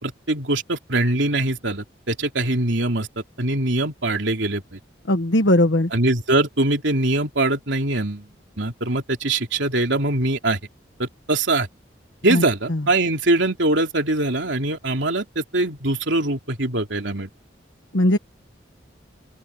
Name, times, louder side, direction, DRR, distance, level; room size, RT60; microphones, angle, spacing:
voice 1, 0.0-3.1 3.4-4.8 5.9-8.3 8.6-10.6 11.0-11.7 12.2-17.3, right 2 dB, 80° right, 3.1 m, -22 dB
voice 2, 5.1-5.9 12.3-12.4 12.7-12.8 17.9-18.2, left 1 dB, 75° left, 1.4 m, -18 dB
head